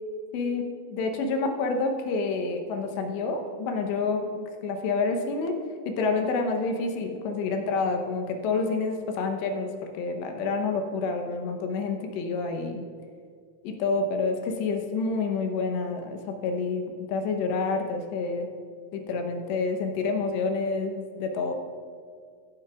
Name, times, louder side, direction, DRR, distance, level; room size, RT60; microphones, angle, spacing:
voice 1, 0.9-5.5 5.9-9.7 9.9-12.8 13.6-18.5 18.9-21.5, left 4 dB, 75° left, 4 dB, 2.9 m, -28 dB
16.5 x 10.5 x 2.4 m, 2.2 s
omnidirectional pair, 5.5 m